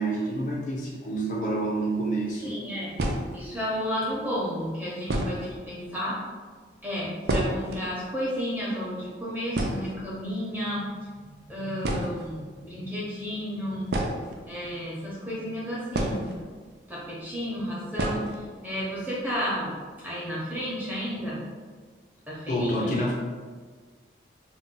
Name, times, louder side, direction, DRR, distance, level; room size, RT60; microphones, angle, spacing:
voice 1, 0.0-2.6 22.5-23.1, right 1 dB, 45° left, -4 dB, 0.4 m, -28 dB
sound 1, 2.0-2.1 2.9-3.6 4.5-4.6 5.0-5.6 5.9-6.0 6.2-6.4 6.8-7.8 8.1-8.2 8.5-8.8 9.1-9.2 9.5-10.4 11.4-11.5 11.8-12.4 13.8-14.9 15.9-16.7 17.0-17.1 17.9-18.4 18.7-18.8 19.2-19.3 19.7-20.1, right 1 dB, 60° right, 0.4 m, -29 dB
voice 2, 2.4-2.9 3.3-6.2 6.8-13.9 14.5-16.3 16.9-19.8 20.0-21.4 22.3-22.9, equal, 10° right, -7 dB, 0.7 m, -32 dB
2.5 x 2.1 x 3.7 m, 1.5 s
head